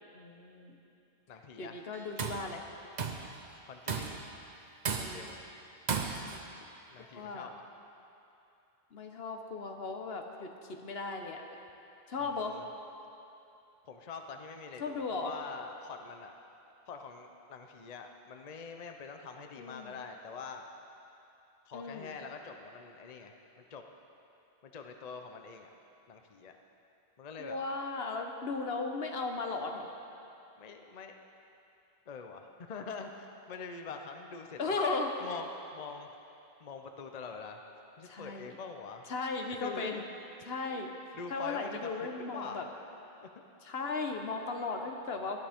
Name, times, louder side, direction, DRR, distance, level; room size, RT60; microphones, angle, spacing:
voice 1, 0.1-0.8 1.6-2.6 5.0-5.3 6.2-6.4 7.0-7.5 8.9-11.4 12.1-12.6 14.8-15.3 19.6-20.0 21.7-22.2 27.4-29.9 34.6-35.1 38.0-38.6 39.1-40.1 40.5-40.9 41.3-42.6 43.6-45.4, left 3 dB, 75° left, 3 dB, 1.2 m, -36 dB
voice 2, 1.3-1.9 3.6-4.2 4.9-5.4 6.9-7.6 12.2-12.6 13.8-16.3 16.9-20.6 21.7-23.4 23.7-23.8 24.6-25.7 26.1-26.6 27.2-27.6 30.6-31.2 32.1-34.6 35.2-36.1 36.6-37.6 38.0-39.1 39.6-40.1 41.2-42.7, left 5 dB, 45° left, 4 dB, 0.7 m, -44 dB
Tools, 1.9-2.5 3.0-3.3 3.9-4.3 4.8-5.4 5.9-6.4, right 5 dB, 50° right, 0.8 m, -35 dB
19.0 x 11.5 x 3.5 m, 2.8 s
omnidirectional pair, 1.0 m